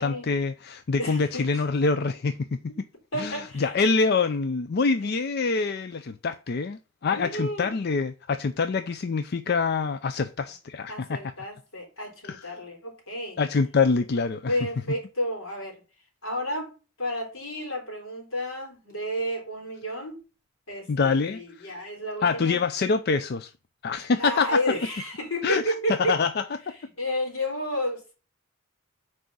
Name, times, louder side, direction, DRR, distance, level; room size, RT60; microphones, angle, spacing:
voice 1, 0.0-2.7 3.2-11.2 12.2-12.5 13.4-14.5 20.9-21.7 22.2-23.5 23.8-24.6 25.4-26.4, left 4 dB, 50° left, 0.4 m, -25 dB
voice 2, 1.0-1.6 3.1-3.7 5.0-5.1 7.1-7.7 10.9-13.4 14.5-15.8 16.2-16.7 17.0-20.2 20.7-22.6 24.2-26.2 27.0-28.1, equal, 75° left, 3.6 m, -31 dB
6.3 x 4.9 x 6.8 m
head